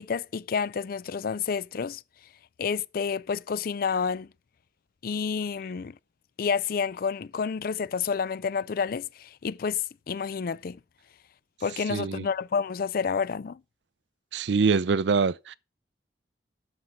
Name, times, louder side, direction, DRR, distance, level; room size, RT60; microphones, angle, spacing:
voice 1, 0.0-2.0 2.6-4.3 5.0-5.9 6.4-10.8 11.6-13.6, left 6 dB, 55° left, 0.4 m, -29 dB
voice 2, 11.9-12.3 14.3-15.5, right 5 dB, 80° right, 0.5 m, -24 dB
9.4 x 6.5 x 5.8 m
head